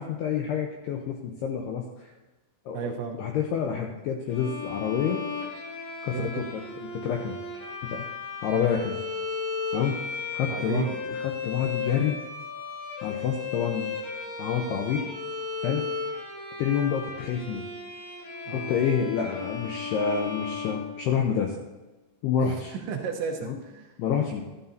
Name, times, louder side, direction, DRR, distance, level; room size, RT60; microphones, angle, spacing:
voice 1, 0.0-2.1 2.7-5.2 6.0-6.6 6.9-7.4 7.9-8.1 8.4-9.0 9.7-10.0 10.3-11.2 11.4-12.2 13.0-14.0 14.4-15.0 15.6-15.9 16.6-17.6 18.5-21.5 22.2-22.7 23.5-23.6 24.0-24.4, left 7 dB, 90° left, 2 dB, 2.3 m, -28 dB
voice 2, 2.7-3.2 6.1-6.4 10.5-11.0 18.5-18.8 22.4-24.0, right 7 dB, 75° right, 1 dB, 3.1 m, -33 dB
Bowed string instrument, 4.3-21.5, left 4 dB, 45° left, 5.2 m, -35 dB
13.0 x 13.0 x 2.7 m, 1.1 s
omnidirectional pair, 5.7 m